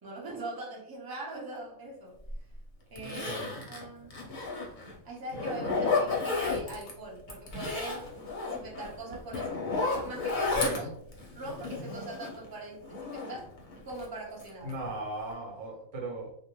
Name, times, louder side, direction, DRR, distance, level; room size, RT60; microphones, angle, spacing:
voice 1, 0.0-2.2 2.9-4.1 5.0-8.1 8.4-10.9 11.3-13.5 13.8-14.7, right 2 dB, 40° right, -3 dB, 0.3 m, -42 dB
Zipper (clothing), 2.3-2.4 3.0-4.9 5.3-6.9 7.3-12.5 12.8-14.1 14.4-14.9 15.2-15.3, left 3 dB, 50° left, 0.6 m, -33 dB
voice 2, 10.5-10.9 14.6-16.5, right 2 dB, 65° right, 0 dB, 1.0 m, -37 dB
2.5 x 2.0 x 2.9 m, 0.70 s
omnidirectional pair, 1.4 m